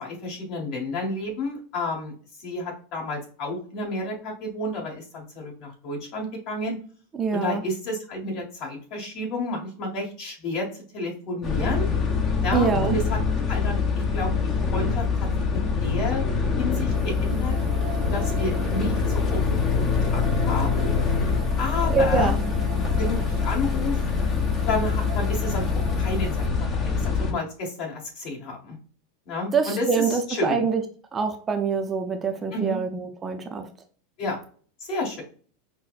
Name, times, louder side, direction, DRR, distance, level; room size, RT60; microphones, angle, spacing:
voice 1, 0.0-2.1 2.4-6.8 7.3-10.7 10.9-11.9 12.4-13.2 13.5-15.3 15.5-16.2 16.6-17.6 18.1-19.4 19.7-20.9 21.6-22.3 23.0-24.0 24.7-28.8 29.3-30.7 32.5-32.8 34.2-34.4 34.8-35.2, left 2 dB, 50° left, 1.6 m, -31 dB
voice 2, 7.2-7.6 12.5-13.0 21.9-22.6 29.5-30.8 31.1-33.7, right 5 dB, 20° right, 0.4 m, -25 dB
sound 1, 11.4-27.3, left 5 dB, 30° left, 0.7 m, -24 dB
sound 2, 16.9-26.5, right 7 dB, 80° right, 0.9 m, -42 dB
5.5 x 2.1 x 2.4 m
supercardioid pair, 125°, 0 cm